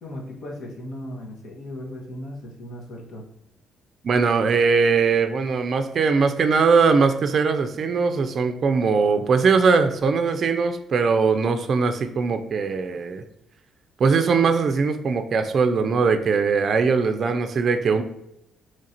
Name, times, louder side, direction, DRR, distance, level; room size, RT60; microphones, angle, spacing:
voice 1, 0.0-3.2, left 1 dB, 70° left, 0 dB, 1.0 m, -36 dB
voice 2, 4.0-13.2 14.0-18.0, right 5 dB, 55° right, 8 dB, 0.4 m, -20 dB
3.1 x 2.5 x 4.2 m, 0.80 s
cardioid pair, 90°, 0 cm